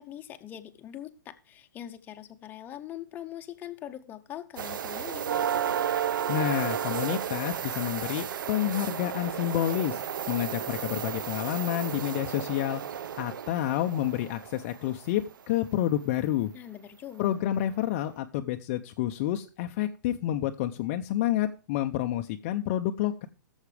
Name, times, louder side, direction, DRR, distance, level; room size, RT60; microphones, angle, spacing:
voice 1, 0.0-5.3 16.5-17.3, left 11 dB, 15° left, 6 dB, 1.0 m, -42 dB
sound 1, 4.6-15.2 17.2-17.3 17.9-18.0, right 9 dB, 75° right, 0.7 m, -33 dB
voice 2, 6.3-10.0 10.3-12.8 13.2-16.5 17.2-23.3, left 13 dB, 35° left, 5 dB, 0.7 m, -29 dB
16.5 x 7.3 x 3.4 m, 0.35 s
hypercardioid pair, 150°, 11 cm